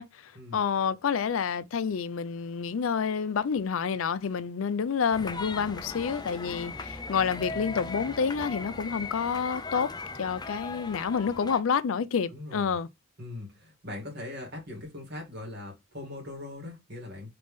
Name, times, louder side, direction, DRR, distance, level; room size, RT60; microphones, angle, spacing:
voice 1, 0.0-9.9 10.2-12.9, left 6 dB, 70° left, 0.4 m, -29 dB
sound 1, 5.1-11.6, left 3 dB, 20° left, 0.5 m, -38 dB
voice 2, 12.3-12.8 13.2-17.3, left 2 dB, 55° right, 2.1 m, -40 dB
3.8 x 3.4 x 3.5 m
head